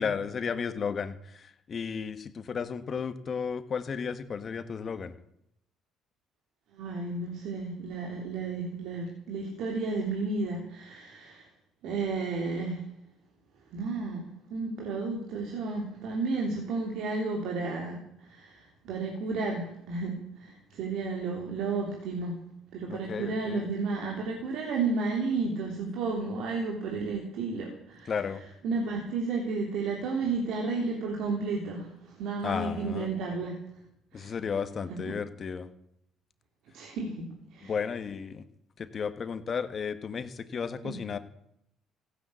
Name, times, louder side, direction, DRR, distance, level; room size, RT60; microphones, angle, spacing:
voice 1, 0.0-5.1 22.8-23.7 28.1-28.5 32.4-33.1 34.1-35.7 37.6-38.4 38.8-41.2, left 6 dB, 45° left, 11 dB, 1.6 m, -33 dB
voice 2, 6.7-11.5 11.8-12.9 13.7-22.4 22.7-28.1 28.6-33.6 34.1-34.3 35.0-35.1 36.7-37.7 40.8-40.9, right 3 dB, 75° right, 1 dB, 3.1 m, -32 dB
15.5 x 10.5 x 8.4 m, 0.76 s
supercardioid pair, 70°, 0 cm